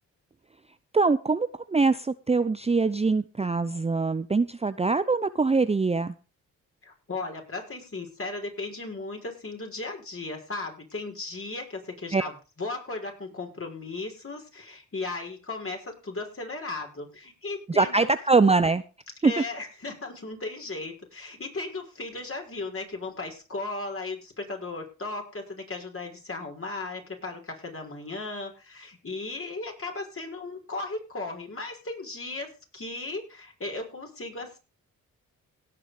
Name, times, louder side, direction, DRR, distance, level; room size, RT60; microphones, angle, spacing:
voice 1, 0.9-6.1 12.1-12.3 17.7-18.8 19.2-19.4, right 4 dB, 15° right, 12 dB, 0.7 m, -23 dB
voice 2, 6.8-12.3 12.6-18.1 19.2-34.6, left 3 dB, 35° left, 2 dB, 5.7 m, -36 dB
17.5 x 6.2 x 5.2 m, 0.33 s
supercardioid pair, 50°, 37 cm